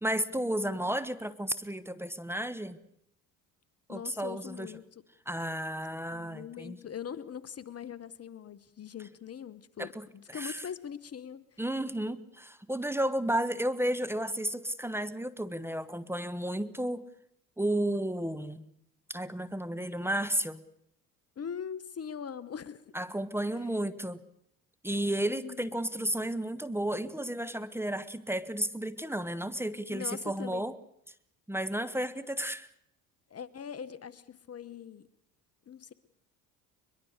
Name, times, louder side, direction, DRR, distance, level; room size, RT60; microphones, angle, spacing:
voice 1, 0.0-2.8 3.9-4.7 5.3-6.8 9.8-10.6 11.6-17.0 17.6-18.6 19.1-20.6 22.9-24.2 24.8-30.8 31.5-32.7, right 1 dB, 5° right, 12 dB, 1.3 m, -33 dB
voice 2, 3.9-5.0 6.1-11.6 21.4-23.0 25.3-25.7 29.9-30.7 33.3-35.1 35.7-35.9, left 8 dB, 35° left, 17 dB, 1.2 m, -42 dB
22.5 x 22.0 x 6.6 m, 0.73 s
hypercardioid pair, 70°, 41 cm